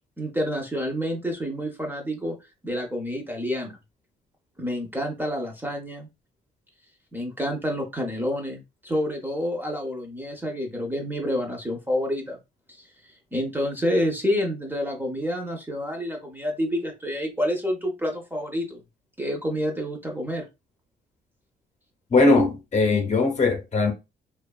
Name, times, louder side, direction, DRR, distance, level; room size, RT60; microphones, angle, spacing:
voice 1, 0.2-2.4 2.6-3.7 4.6-6.1 7.1-12.4 12.8-12.9 13.3-18.8 19.2-20.5, equal, 10° right, 0.6 m, -28 dB
voice 2, 22.1-23.9, left 3 dB, 35° left, 0.7 m, -20 dB
2.6 x 2.3 x 2.2 m
cardioid pair, 90°, 20 cm